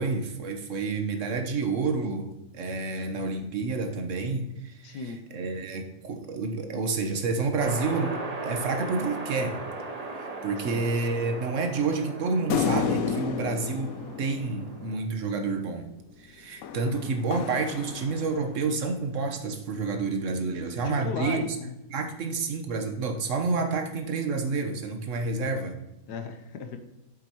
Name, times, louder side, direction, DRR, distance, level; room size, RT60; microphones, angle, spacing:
voice 1, 0.0-5.1 5.3-8.2 8.4-9.6 10.0-15.9 16.2-21.4 21.9-25.8, right 4 dB, 55° right, 5 dB, 1.2 m, -29 dB
voice 2, 4.8-5.2 10.6-10.8 20.8-21.7 26.1-26.8, left 5 dB, 85° left, 7 dB, 1.5 m, -36 dB
sound 1, 7.6-15.0, right 3 dB, 40° right, 0.6 m, -38 dB
sound 2, 12.5-15.2 16.6-18.7, left 7 dB, 70° left, 1.0 m, -31 dB
8.1 x 7.4 x 3.0 m, 0.93 s
omnidirectional pair, 1.7 m